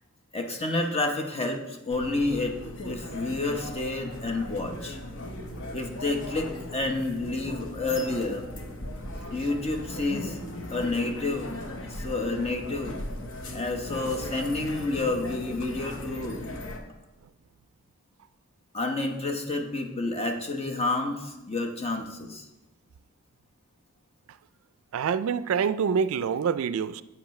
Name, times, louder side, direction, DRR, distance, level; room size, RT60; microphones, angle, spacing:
voice 1, 0.3-2.6 2.8-5.0 5.7-8.4 9.3-10.4 10.7-11.6 11.9-13.0 13.5-16.4 18.7-22.5, left 2 dB, 25° left, 0.9 m, -29 dB
sound 1, 1.9-16.8, left 1 dB, 65° left, 1.0 m, -38 dB
voice 2, 24.9-27.0, right 6 dB, 70° right, 0.3 m, -26 dB
10.5 x 8.0 x 3.2 m
head